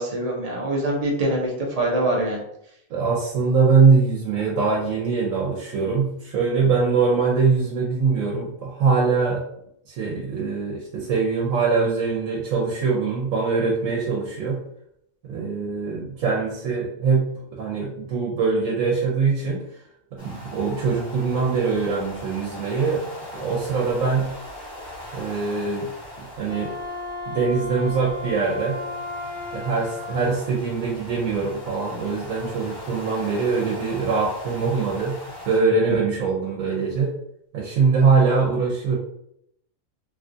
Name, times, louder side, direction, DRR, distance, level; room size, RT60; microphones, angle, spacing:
voice 1, 0.0-1.5 1.8-2.4, right 1 dB, 35° right, -2 dB, 0.7 m, -24 dB
voice 2, 2.9-9.4 9.9-14.6 15.2-19.6 20.1-23.1 23.3-24.3 25.1-25.9 26.4-26.8 27.3-28.8 29.5-35.2 35.5-37.1 37.5-39.0, right 4 dB, 85° right, -2 dB, 1.1 m, -22 dB
sound 1, 20.2-35.6, left 1 dB, 50° left, 1.4 m, -40 dB
Wind instrument woodwind instrument, 26.4-30.5, left 2 dB, 25° left, 1.2 m, -34 dB
3.1 x 2.4 x 2.6 m, 0.73 s
omnidirectional pair, 1.4 m